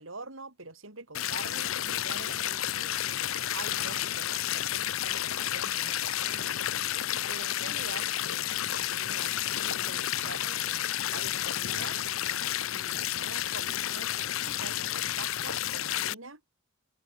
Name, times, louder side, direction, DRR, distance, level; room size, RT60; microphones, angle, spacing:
voice 1, 0.0-3.0 3.5-6.6 7.3-12.0 12.7-16.4, right 3 dB, 75° right, 5.4 m, -46 dB
sound 1, 1.1-16.1, left 12 dB, 85° left, 0.7 m, -31 dB
open air
head